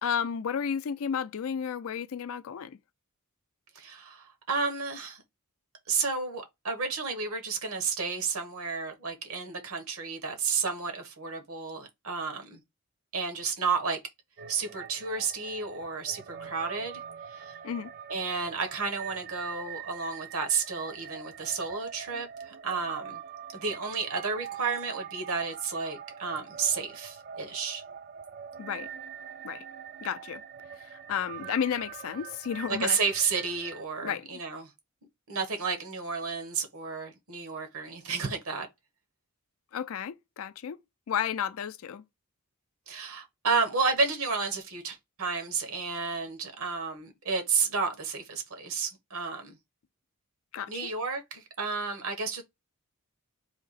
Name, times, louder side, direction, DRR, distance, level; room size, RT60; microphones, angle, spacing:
voice 1, 0.0-2.8 17.6-17.9 28.6-28.9 29.4-29.6 30.0-30.4 31.1-33.0 34.0-34.4 39.7-40.8 41.1-42.0 50.5-50.9, left 8 dB, 65° left, 0.4 m, -32 dB
voice 2, 3.7-5.2 5.9-12.6 13.1-14.0 14.5-17.0 17.3-17.6 18.1-23.2 23.5-27.8 32.7-34.7 35.3-38.7 42.9-49.6 50.7-52.4, right 5 dB, 70° right, 1.2 m, -31 dB
sound 1, 14.4-33.8, right 8 dB, 45° right, 0.4 m, -44 dB
3.7 x 2.8 x 4.0 m
head